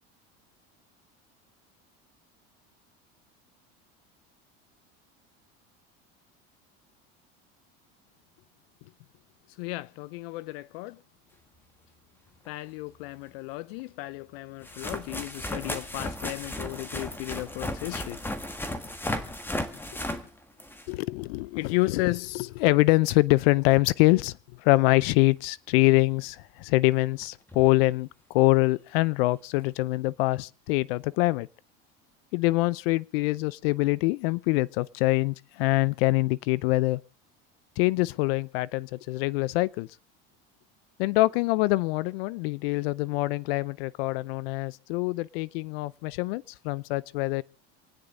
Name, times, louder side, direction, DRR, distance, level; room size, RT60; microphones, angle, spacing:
voice 1, 9.6-11.0 12.5-18.2 20.9-31.5 32.3-37.0 37.8-39.9 41.0-47.4, left 21 dB, 90° left, 0.6 m, -25 dB
sound 1, 12.5-12.6 13.8-13.9 14.6-21.0 26.1-26.2 27.2-27.3 27.5-27.7 29.6-29.7, left 1 dB, 5° left, 1.6 m, -35 dB
28.0 x 9.6 x 3.8 m
cardioid pair, 140°, 29 cm